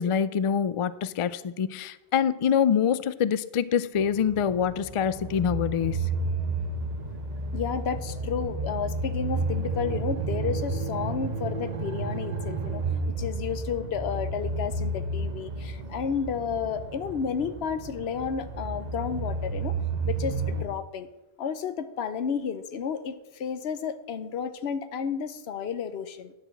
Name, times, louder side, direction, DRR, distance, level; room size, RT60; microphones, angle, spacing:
voice 1, 0.0-6.1, left 8 dB, 60° left, 16 dB, 0.3 m, -25 dB
sound 1, 4.0-20.6, right 3 dB, 45° right, 0.9 m, -32 dB
voice 2, 7.5-12.8 13.2-19.8 20.0-21.1 21.4-26.3, left 7 dB, 80° left, 12 dB, 1.0 m, -32 dB
10.5 x 4.9 x 7.6 m, 0.98 s
omnidirectional pair, 1.0 m